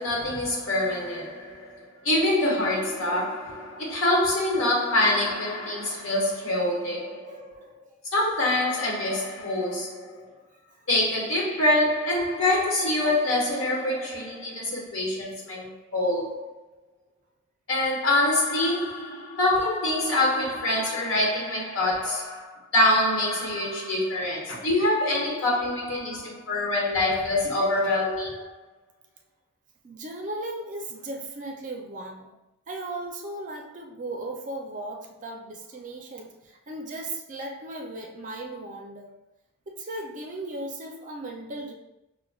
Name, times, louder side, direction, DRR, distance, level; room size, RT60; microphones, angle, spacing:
voice 1, 0.0-7.7 8.1-10.3 10.9-16.5 17.7-28.5, left 1 dB, 70° left, 1.1 m, -25 dB
voice 2, 7.3-7.7 10.3-10.8 26.3-26.4 29.8-32.4 32.7-39.2 39.7-41.7, right 2 dB, 40° right, 0.5 m, -37 dB
5.8 x 2.1 x 2.3 m
head